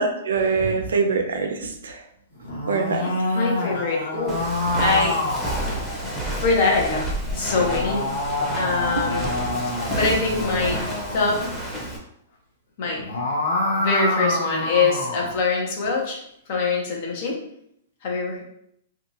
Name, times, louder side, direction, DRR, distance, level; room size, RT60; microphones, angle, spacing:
voice 1, 0.0-2.0 2.7-3.4 9.0-9.1, right 4 dB, 80° right, 5 dB, 0.5 m, -24 dB
sound 1, 2.4-6.2 7.2-11.4 12.9-15.4, left 1 dB, 80° left, 1.0 m, -27 dB
voice 2, 3.3-4.5 4.8-5.2 6.4-8.1 8.6-9.3 9.7-10.8 11.1-11.7 12.8-13.0 13.7-16.2 16.5-17.4 18.0-18.4, left 4 dB, 55° left, -1 dB, 0.9 m, -24 dB
Walk footsteps, 4.3-12.0, right 1 dB, ahead, 0.8 m, -30 dB
2.7 x 2.4 x 2.7 m, 0.72 s
hypercardioid pair, 125°, 0 cm